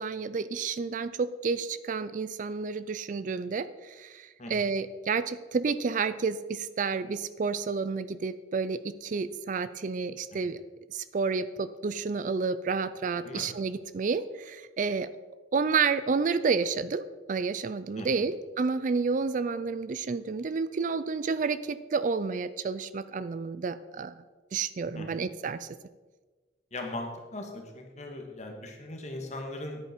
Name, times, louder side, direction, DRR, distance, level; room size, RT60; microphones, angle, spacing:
voice 1, 0.0-10.6 10.9-15.1 15.5-24.1 24.5-25.7, right 4 dB, 45° right, 15 dB, 0.4 m, -30 dB
voice 2, 4.4-4.7 10.3-10.4 13.2-13.5 18.0-18.3 25.0-25.3 26.7-29.8, left 2 dB, 40° left, 2 dB, 1.7 m, -39 dB
10.0 x 8.8 x 4.5 m, 1.3 s
head